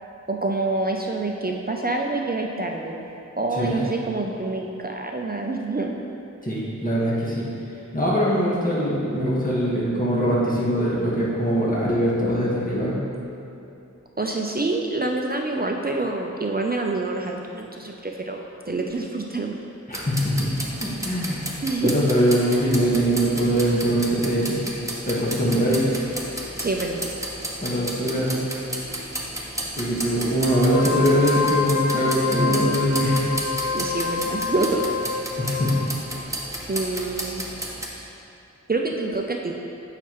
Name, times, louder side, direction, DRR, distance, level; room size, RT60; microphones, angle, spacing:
voice 1, 0.3-3.0 3.4-5.9 14.2-19.6 21.6-21.9 26.6-27.1 33.7-34.8 36.7-37.4 38.7-39.5, right 3 dB, 30° right, 1 dB, 0.5 m, -27 dB
voice 2, 6.4-7.5 7.9-13.0 19.9-20.5 20.8-24.6 25.0-25.9 27.6-28.4 29.8-33.2 35.4-35.8, equal, 30° left, -7 dB, 1.5 m, -22 dB
sound 1, 19.9-37.9, right 1 dB, 10° right, 1.0 m, -33 dB
Wind instrument woodwind instrument, 30.6-35.9, left 5 dB, 65° left, 1.3 m, -27 dB
8.9 x 5.7 x 3.1 m, 2.8 s
wide cardioid pair, 45°, 29 cm